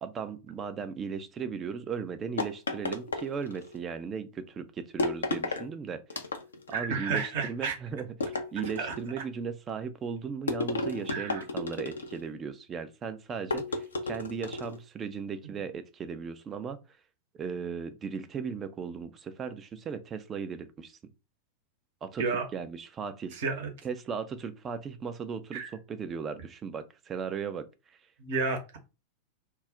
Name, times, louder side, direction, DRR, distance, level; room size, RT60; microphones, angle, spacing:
voice 1, 0.0-6.0 6.7-16.8 17.3-21.0 22.0-22.2 22.5-23.4 23.8-25.6 25.9-27.6, right 6 dB, 25° right, 0.4 m, -37 dB
sound 1, 2.4-3.8 5.0-5.7 6.1-6.8 8.2-9.1 10.5-12.3 13.5-14.8, left 3 dB, 70° left, 0.4 m, -33 dB
voice 2, 6.7-7.8 8.8-9.2 11.1-11.4 22.2-22.5 23.3-23.7 25.5-25.7 28.2-28.8, right 4 dB, 55° right, 0.7 m, -31 dB
2.3 x 2.0 x 3.7 m
figure-of-eight pair, 90°, 0 cm